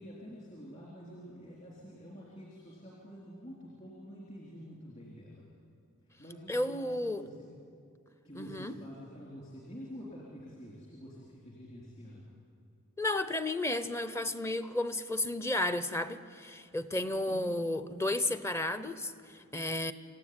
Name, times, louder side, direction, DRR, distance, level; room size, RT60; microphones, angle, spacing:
voice 1, 0.0-5.5 6.0-7.5 8.2-12.3 17.1-17.5, equal, 35° left, -4 dB, 4.1 m, -48 dB
voice 2, 6.5-7.2 8.3-8.7 13.0-19.9, left 1 dB, 10° left, 12 dB, 0.7 m, -33 dB
27.5 x 15.5 x 9.8 m, 2.4 s
head